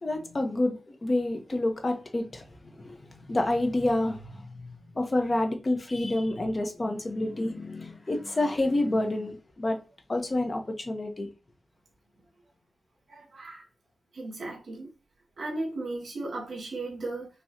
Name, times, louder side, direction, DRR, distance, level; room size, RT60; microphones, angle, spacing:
voice 1, 0.0-9.8 10.1-11.3, left 1 dB, 30° left, 1.0 m, -29 dB
voice 2, 13.1-13.7 14.1-14.9 15.4-17.3, right 2 dB, 70° right, 2.0 m, -36 dB
5.8 x 3.1 x 2.8 m
wide cardioid pair, 125°, 0 cm